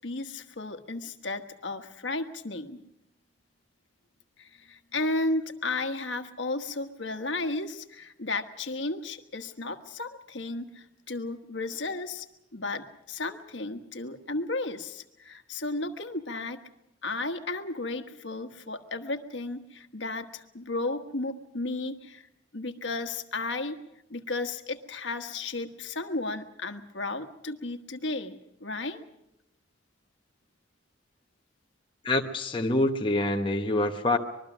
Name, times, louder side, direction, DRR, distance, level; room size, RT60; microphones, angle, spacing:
voice 1, 0.0-2.8 4.4-12.3 12.5-16.6 17.0-22.3 22.5-23.8 24.1-29.0, left 2 dB, 70° left, 7 dB, 1.4 m, -34 dB
voice 2, 32.0-34.2, left 2 dB, 25° left, 3 dB, 1.0 m, -26 dB
25.0 x 21.5 x 6.2 m, 0.83 s
head